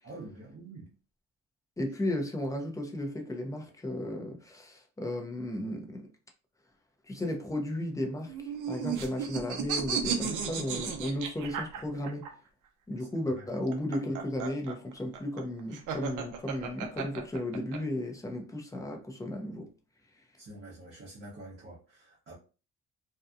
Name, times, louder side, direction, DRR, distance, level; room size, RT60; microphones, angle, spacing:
voice 1, 0.0-0.9 8.8-9.1 13.0-13.1 13.3-13.5 20.4-22.4, right 2 dB, 45° right, 0.9 m, -47 dB
voice 2, 1.8-6.1 7.1-12.3 12.9-19.7, left 1 dB, 10° left, 0.7 m, -34 dB
sound 1, 8.3-12.3 13.5-17.8, right 7 dB, 85° right, 0.6 m, -34 dB
2.7 x 2.2 x 2.4 m
cardioid pair, 90°, 30 cm